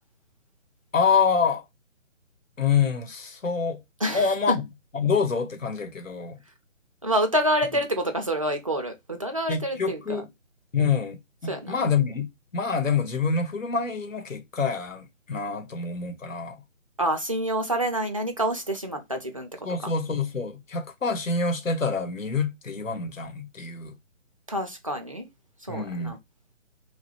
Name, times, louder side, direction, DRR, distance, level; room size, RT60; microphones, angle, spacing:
voice 1, 0.9-1.6 2.6-3.8 4.1-4.6 4.9-6.4 9.5-10.3 10.7-12.3 12.5-16.6 19.6-24.0 25.7-26.2, left 5 dB, 75° left, 1.1 m, -26 dB
voice 2, 4.0-4.5 7.0-10.2 11.5-11.8 17.0-19.5 19.8-19.9 24.5-25.3 25.6-26.2, right 1 dB, 25° right, 0.4 m, -27 dB
3.2 x 2.4 x 4.3 m
figure-of-eight pair, 150°, 39 cm